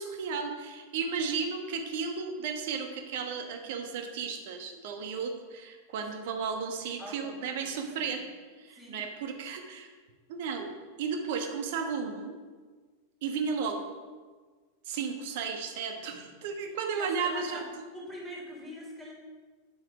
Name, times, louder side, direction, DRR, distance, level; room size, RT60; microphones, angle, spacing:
voice 1, 0.0-8.2 8.6-9.9 10.3-10.7 11.0-12.3 13.2-13.9 14.8-17.6, right 5 dB, 50° right, 5 dB, 1.3 m, -34 dB
voice 2, 7.0-8.2 8.7-9.0 16.1-16.2 16.9-17.7 17.9-19.1, equal, 10° right, -3 dB, 3.1 m, -44 dB
9.3 x 7.8 x 5.0 m, 1.5 s
figure-of-eight pair, 90°, 0 cm